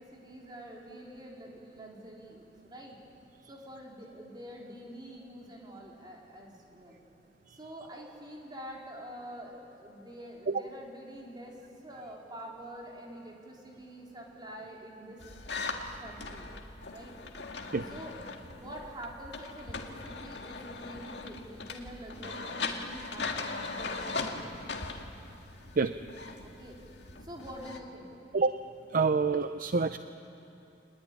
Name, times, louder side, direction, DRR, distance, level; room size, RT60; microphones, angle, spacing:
voice 1, 0.0-3.0 3.5-7.0 7.5-11.6 11.8-15.2 16.0-16.5 16.9-17.1 17.8-18.2 18.5-24.4 26.4-26.8 27.2-28.2, equal, 25° right, -2 dB, 4.0 m, -46 dB
sound 1, 15.2-27.8, left 3 dB, 70° left, 2.0 m, -40 dB
voice 2, 28.9-30.0, right 4 dB, 50° right, 10 dB, 0.6 m, -26 dB
25.5 x 20.5 x 9.8 m, 3.0 s
head